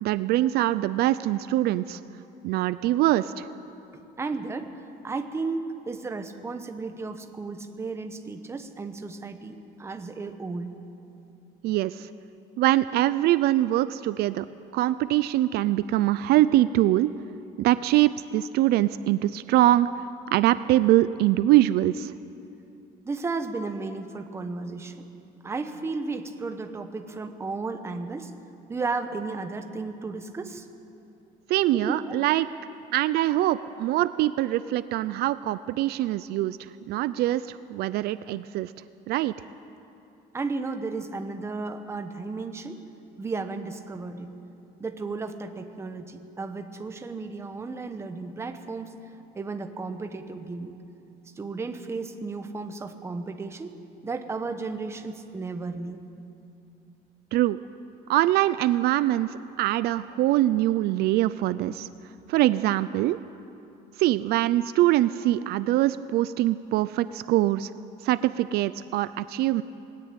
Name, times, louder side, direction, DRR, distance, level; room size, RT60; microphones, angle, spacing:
voice 1, 0.0-2.0 2.4-3.5 11.6-12.1 12.6-14.5 14.7-17.1 17.6-19.9 20.3-22.1 31.5-32.5 32.9-38.7 39.1-39.3 57.3-57.6 58.1-59.3 59.6-61.9 62.3-63.2 64.0-67.7 68.0-69.6, right 15 dB, 65° right, 15 dB, 0.5 m, -23 dB
voice 2, 3.9-10.7 23.0-25.1 25.4-28.3 28.7-30.7 31.7-32.2 40.3-42.8 43.2-44.3 44.8-49.0 49.3-50.7 51.4-53.8 54.0-56.0, right 3 dB, 15° right, 7 dB, 1.1 m, -34 dB
20.0 x 17.5 x 8.8 m, 2.7 s
cardioid pair, 180°, 17 cm